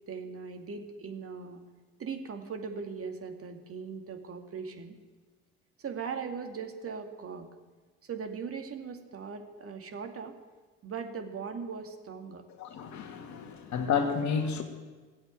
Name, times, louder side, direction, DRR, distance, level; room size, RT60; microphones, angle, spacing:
voice 1, 0.1-1.6 2.0-5.0 5.8-7.5 8.0-10.3 10.8-12.4, right 5 dB, 40° right, 2.3 m, -39 dB
voice 2, 12.6-14.6, left 6 dB, 55° left, 2.1 m, -30 dB
15.5 x 8.0 x 9.0 m
hypercardioid pair, 60°, 34 cm